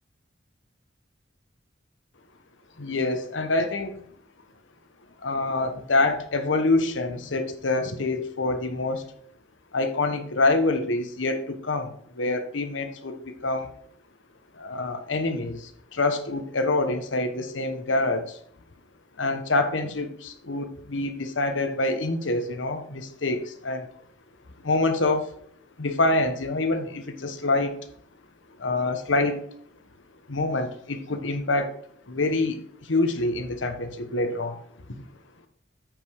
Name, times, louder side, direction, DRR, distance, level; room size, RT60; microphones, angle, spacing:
voice 1, 2.8-4.0 5.2-9.0 9.7-13.7 14.6-18.4 19.2-23.9 24.6-25.3 25.8-27.8 28.6-29.4 30.3-31.8 32.1-34.6 34.9-35.0, left 2 dB, 90° left, 8 dB, 1.1 m, -26 dB
9.0 x 5.1 x 4.8 m, 0.62 s
head